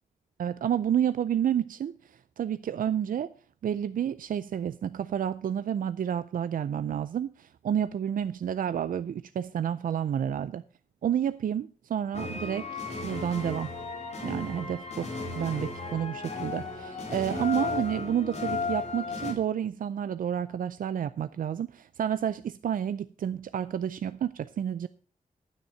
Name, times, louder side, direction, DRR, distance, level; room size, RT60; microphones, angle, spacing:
voice 1, 0.4-3.3 3.6-10.6 11.0-13.7 14.2-24.9, right 9 dB, 85° right, 0.4 m, -30 dB
sound 1, 12.1-19.3, left 4 dB, 50° left, 2.8 m, -35 dB
10.0 x 9.2 x 5.6 m
wide cardioid pair, 150°, 14 cm